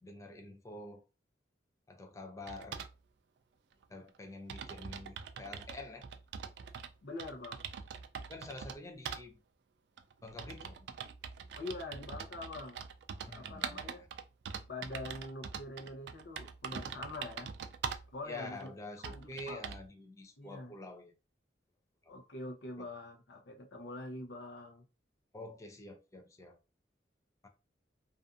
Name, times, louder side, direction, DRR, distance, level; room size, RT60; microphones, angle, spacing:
voice 1, 0.0-1.1 1.9-2.9 3.9-6.1 8.3-9.4 10.2-10.9 13.3-14.1 18.2-21.1 22.0-22.1 25.3-26.6 27.4-27.5, left 2 dB, 20° left, 0.4 m, -47 dB
sound 1, 2.5-2.9 3.8-3.9 4.2-4.3 4.5-6.9 7.2-8.8 9.1-9.2 10.0-18.1 18.6-18.7 19.0-19.9, right 7 dB, 70° right, 0.3 m, -43 dB
voice 2, 7.0-7.6 11.5-12.8 13.3-14.1 14.7-17.5 18.1-18.7 19.0-19.6 20.4-20.7 22.1-24.8, left 2 dB, 75° left, 0.6 m, -44 dB
2.5 x 2.4 x 2.4 m
head